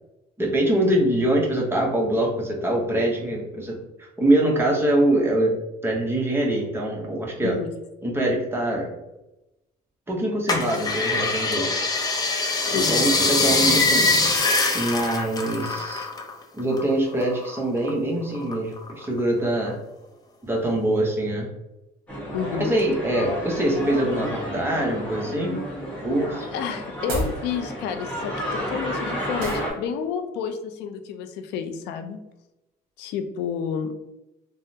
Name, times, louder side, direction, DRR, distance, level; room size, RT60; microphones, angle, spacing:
voice 1, 0.4-5.5 5.8-7.6 8.0-8.9 10.1-11.8 12.7-14.1 14.7-16.1 16.5-19.8 20.4-21.5 22.5-25.6 26.0-26.5, right 1 dB, 15° right, -1 dB, 0.8 m, -24 dB
voice 2, 7.4-7.7 12.6-13.0 22.3-22.8 26.4-32.2 33.0-33.9, left 7 dB, 85° left, 7 dB, 0.4 m, -30 dB
sound 1, 10.5-16.3 16.6-17.9 18.3-19.2 19.7-19.8, left 3 dB, 25° left, 0.5 m, -23 dB
sound 2, 22.1-29.7, equal, 5° left, 1.1 m, -32 dB
sound 3, 27.0-27.4 29.4-29.7, right 1 dB, 60° right, 0.9 m, -28 dB
3.5 x 2.1 x 2.7 m, 0.94 s
cardioid pair, 110°, 17 cm